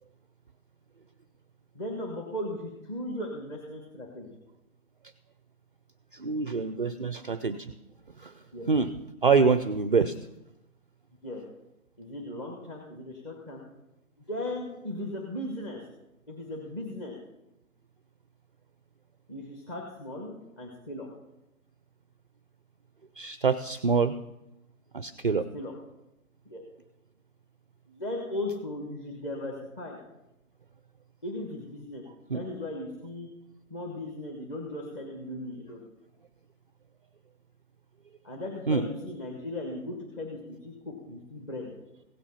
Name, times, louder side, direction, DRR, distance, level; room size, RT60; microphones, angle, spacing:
voice 1, 1.7-4.3 8.5-8.7 11.2-11.4 12.0-13.6 14.2-15.8 16.3-17.2 19.3-21.1 25.3-25.7 26.4-26.6 27.9-30.0 31.2-32.0 32.3-33.3 33.7-35.8 38.2-41.7, left 1 dB, 15° left, -2 dB, 1.2 m, -37 dB
voice 2, 6.1-7.7 8.2-8.3 8.7-8.9 9.2-10.1 23.2-24.2 24.9-25.4 32.3-32.4 38.7-38.9, right 4 dB, 40° right, 13 dB, 0.4 m, -25 dB
16.5 x 7.3 x 5.6 m, 0.90 s
hypercardioid pair, 160°, 43 cm